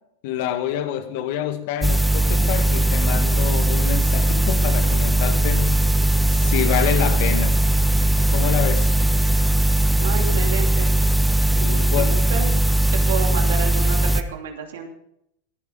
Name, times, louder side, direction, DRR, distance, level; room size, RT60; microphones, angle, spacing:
voice 1, 0.2-5.8 6.3-7.6 8.3-8.9 11.6-12.2, left 10 dB, 60° left, 1.7 m, -27 dB
sound 1, 1.8-14.2, right 1 dB, 5° right, 1.0 m, -19 dB
voice 2, 10.0-10.9 11.6-12.5 13.1-14.9, right 6 dB, 75° right, 2.7 m, -30 dB
19.5 x 11.0 x 3.8 m
hypercardioid pair, 95°, 0 cm